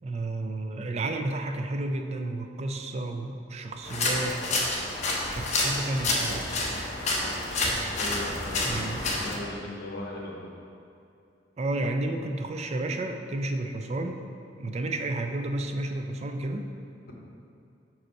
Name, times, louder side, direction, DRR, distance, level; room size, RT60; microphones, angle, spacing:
voice 1, 0.0-4.6 5.3-6.5 8.6-9.1 11.6-14.2 14.6-16.7, right 2 dB, 35° right, 5 dB, 0.4 m, -31 dB
sound 1, 3.8-9.4, left 2 dB, 40° left, 0.9 m, -29 dB
voice 2, 7.9-10.5, left 1 dB, 60° left, -2 dB, 1.1 m, -38 dB
5.6 x 5.1 x 4.5 m, 2.6 s
head